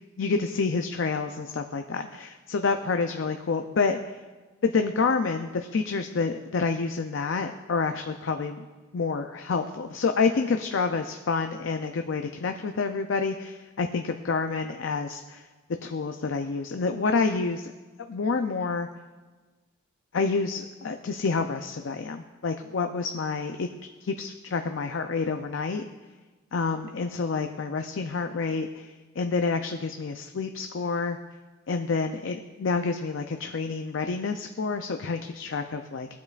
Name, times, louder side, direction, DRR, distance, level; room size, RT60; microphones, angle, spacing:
voice 1, 0.2-4.0 4.6-8.6 8.9-15.4 15.8-17.7 18.1-18.9 20.1-23.7 24.0-25.8 26.5-28.9 29.2-31.2 31.7-36.1, left 4 dB, 70° left, 6 dB, 0.5 m, -28 dB
17.5 x 8.3 x 2.4 m, 1.3 s
head